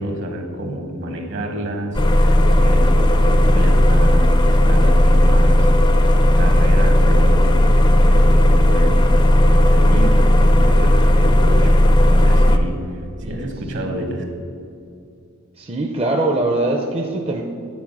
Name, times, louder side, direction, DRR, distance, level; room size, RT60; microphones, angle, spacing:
voice 1, 0.0-5.7 6.4-7.6 7.9-11.7 12.1-14.2, right 1 dB, 60° right, 4 dB, 1.3 m, -29 dB
sound 1, 1.9-12.6, left 1 dB, 20° left, 0.5 m, -14 dB
voice 2, 13.2-13.5 13.8-13.9 15.6-17.4, right 2 dB, 25° right, 1 dB, 0.6 m, -22 dB
9.3 x 4.6 x 6.1 m, 2.5 s
head